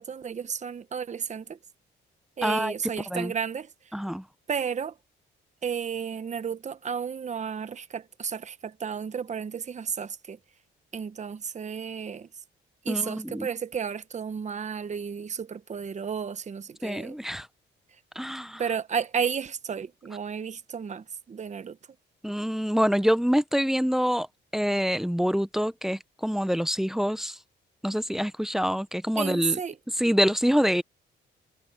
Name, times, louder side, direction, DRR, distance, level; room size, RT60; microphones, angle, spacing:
voice 1, 0.0-1.6 2.4-3.7 4.5-5.0 5.6-10.4 10.9-12.3 12.8-17.2 18.6-21.8 29.2-29.8, right 6 dB, 35° right, 1.1 m, -32 dB
voice 2, 2.4-2.7 3.1-3.3 3.9-4.2 12.9-13.5 16.8-17.5 18.2-18.6 22.2-24.3 24.5-27.3 27.8-29.6 30.0-30.8, equal, ahead, 0.7 m, -26 dB
cardioid pair, 90°, 20 cm